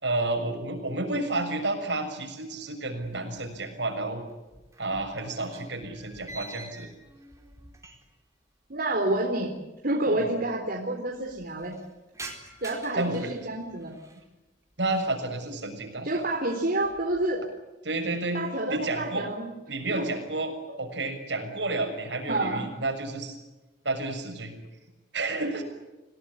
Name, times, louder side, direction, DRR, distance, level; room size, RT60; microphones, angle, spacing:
voice 1, 0.0-4.2 4.8-6.9 12.9-13.3 14.8-16.2 17.9-19.3 19.7-23.4 23.8-24.5 25.1-25.6, right 2 dB, 80° right, 4 dB, 6.8 m, -30 dB
sound 1, 3.0-3.9 4.2-8.3 8.6-8.7 9.5-9.6 9.8-9.9 10.2-10.7 11.1-14.3 14.7-15.2 15.7-16.1 16.5-17.4, right 2 dB, 20° right, 4.2 m, -47 dB
voice 2, 8.7-9.5 9.8-11.7 12.6-13.9 16.0-17.4 18.3-19.5 19.9-20.1 22.3-22.6, right 2 dB, 55° right, 0 dB, 4.0 m, -28 dB
27.0 x 18.5 x 9.9 m, 1.1 s
head